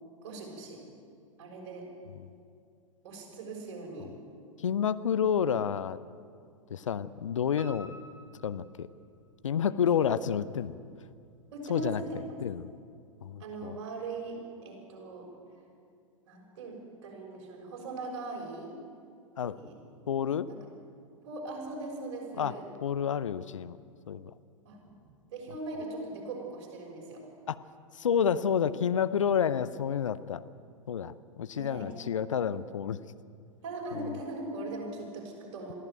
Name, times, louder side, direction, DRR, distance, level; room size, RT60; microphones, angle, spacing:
voice 1, 0.2-0.8 1.4-1.9 3.0-4.1 10.0-10.1 11.5-12.2 13.4-15.3 16.3-18.8 19.5-19.8 20.5-20.6 21.2-22.7 24.6-25.0 25.3-27.3 31.5-31.9 33.6-35.7, right 2 dB, 50° right, 0 dB, 6.5 m, -40 dB
voice 2, 4.6-6.0 6.7-7.9 8.4-8.9 9.4-10.8 11.7-12.0 12.4-12.7 13.2-13.8 19.4-19.6 20.1-20.5 22.4-22.5 22.8-23.8 24.1-24.3 27.5-27.6 28.0-30.4 30.9-33.0 34.0-34.1, left 8 dB, 65° left, 15 dB, 0.7 m, -29 dB
Piano, 7.6-9.5 9.9-10.8 11.1-11.2 11.7-11.8 12.0-12.1, equal, 15° right, 3.6 m, -52 dB
22.5 x 14.5 x 9.1 m, 2.3 s
figure-of-eight pair, 100°, 17 cm